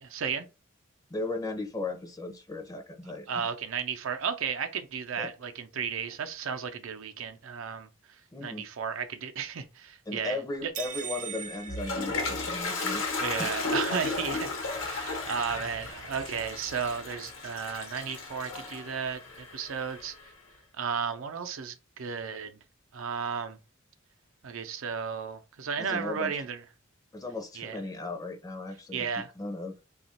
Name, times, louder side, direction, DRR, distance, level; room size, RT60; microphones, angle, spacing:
voice 1, 0.0-0.5 3.3-7.9 8.4-10.7 13.2-20.1 20.8-22.6 22.9-23.6 24.4-26.6 27.5-27.8 28.9-29.3, right 6 dB, 90° right, 0.5 m, -34 dB
voice 2, 1.1-3.4 5.2-5.3 8.3-8.6 10.1-13.5 13.8-14.0 25.8-26.3 27.1-29.8, left 2 dB, 20° left, 0.5 m, -36 dB
sound 1, 10.7-12.9, right 9 dB, 40° right, 0.4 m, -40 dB
Toilet flush, 11.4-20.3, left 3 dB, 80° left, 0.9 m, -34 dB
2.9 x 2.4 x 4.1 m
head